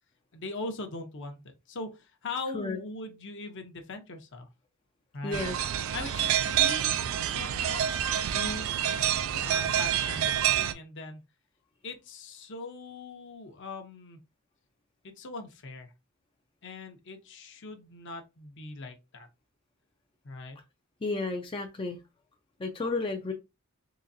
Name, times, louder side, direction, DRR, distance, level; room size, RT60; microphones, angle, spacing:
voice 1, 0.3-4.5 5.1-5.4 5.9-6.9 7.3-7.8 8.2-8.8 9.0-11.2 11.8-14.2 15.0-15.9 16.6-19.3 20.2-20.6, left 3 dB, 55° left, 0.8 m, -40 dB
voice 2, 5.2-5.6 21.0-22.0 22.6-23.3, left 3 dB, 25° left, 0.4 m, -32 dB
sound 1, 5.3-10.7, right 10 dB, 65° right, 0.3 m, -27 dB
3.9 x 3.0 x 2.6 m
head